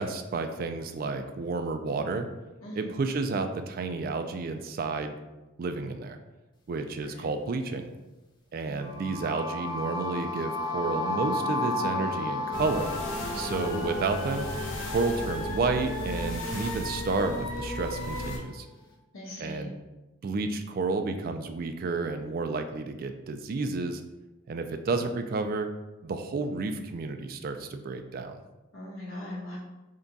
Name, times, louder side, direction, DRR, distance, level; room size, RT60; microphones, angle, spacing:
voice 1, 0.0-2.3 2.8-5.2 5.6-6.2 6.7-7.9 8.5-12.9 13.3-14.5 14.9-18.6 19.4-19.7 20.2-24.0 24.5-25.7 26.0-28.4, right 3 dB, 45° right, 7 dB, 0.3 m, -31 dB
voice 2, 2.6-3.0 7.1-7.3 8.6-9.0 19.1-19.7 28.7-29.6, left 1 dB, 85° left, -5 dB, 1.2 m, -41 dB
sound 1, 8.8-16.7, left 2 dB, 20° left, 0.5 m, -34 dB
sound 2, 12.5-18.4, left 1 dB, 65° left, 0.7 m, -34 dB
3.7 x 2.3 x 3.9 m, 1.1 s
head